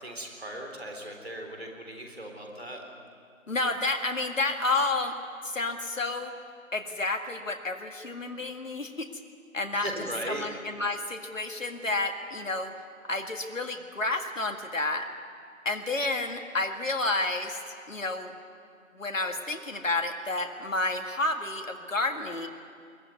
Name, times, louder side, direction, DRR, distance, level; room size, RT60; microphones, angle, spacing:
voice 1, 0.0-2.8 9.7-10.5, right 1 dB, 50° right, 2 dB, 3.9 m, -38 dB
voice 2, 3.5-5.1 5.4-6.3 6.7-9.1 9.5-9.9 10.3-12.7 13.1-15.1 15.7-17.6 17.9-18.3 18.9-22.5, left 2 dB, 70° left, 5 dB, 2.0 m, -30 dB
22.5 x 17.0 x 9.5 m, 2.3 s
figure-of-eight pair, 170°, 41 cm